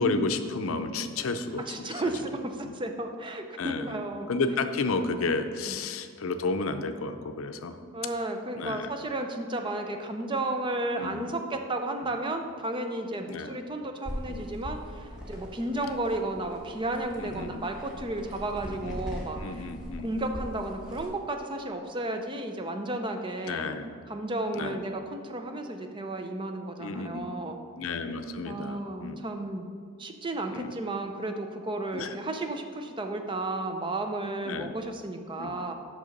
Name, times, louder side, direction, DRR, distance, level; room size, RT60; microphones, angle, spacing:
voice 1, 0.0-2.2 2.6-2.7 3.6-4.0 4.3-7.8 8.6-8.9 11.0-11.3 12.0-12.1 13.3-13.6 14.3-14.5 15.7-15.9 17.2-17.6 18.6-19.0 19.4-20.1 23.4-23.9 24.5-24.8 26.8-27.4 27.8-29.2 30.5-30.7 31.9-32.1 34.4-34.7 35.4-35.5, left 3 dB, 80° left, 9 dB, 0.6 m, -32 dB
voice 2, 1.7-4.3 7.9-19.7 20.0-23.7 24.1-27.6 28.4-29.6 30.0-35.7, right 2 dB, 25° right, 5 dB, 0.5 m, -33 dB
sound 1, 14.0-21.1, equal, 5° right, 1.4 m, -41 dB
6.6 x 6.1 x 5.2 m, 2.1 s
head